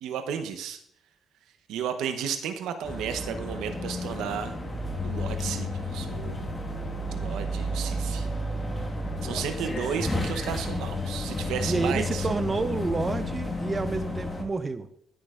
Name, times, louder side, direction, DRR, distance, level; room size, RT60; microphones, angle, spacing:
voice 1, 0.0-0.8 1.7-4.5 5.0-6.5 7.1-8.3 9.2-12.3, right 8 dB, 85° right, 8 dB, 0.8 m, -33 dB
sound 1, 2.8-14.4, left 1 dB, 20° left, 1.5 m, -32 dB
voice 2, 9.2-9.8 11.6-14.9, right 3 dB, 30° right, 11 dB, 0.5 m, -30 dB
14.0 x 6.3 x 2.4 m, 0.70 s
cardioid pair, 90°, 0 cm